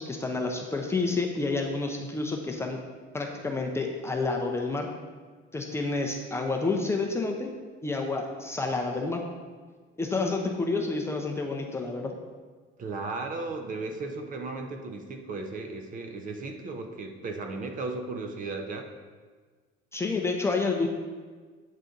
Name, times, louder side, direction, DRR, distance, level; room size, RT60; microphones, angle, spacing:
voice 1, 0.0-2.8 3.1-4.9 5.5-7.5 7.8-9.2 10.0-12.1 19.9-20.9, left 3 dB, 10° left, 0 dB, 0.5 m, -29 dB
voice 2, 12.8-18.9, right 3 dB, 40° right, 5 dB, 0.6 m, -35 dB
8.2 x 4.0 x 3.8 m, 1.5 s
cardioid pair, 155°, 21 cm